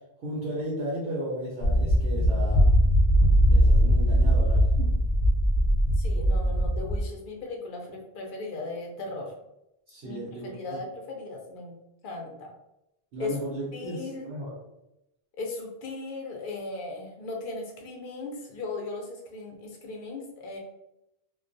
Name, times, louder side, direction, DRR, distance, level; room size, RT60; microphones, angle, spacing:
voice 1, 0.2-2.6 3.5-4.9 9.9-10.8 13.1-14.5, right 1 dB, 70° right, -5 dB, 0.9 m, -35 dB
sound 1, 1.6-7.1, equal, 90° right, 1.1 m, -21 dB
voice 2, 6.0-9.3 10.0-11.8 12.0-12.5 13.2-13.4 13.7-14.3 15.4-20.6, left 3 dB, 60° left, 1 dB, 0.7 m, -37 dB
2.2 x 2.2 x 2.5 m, 0.87 s
omnidirectional pair, 1.1 m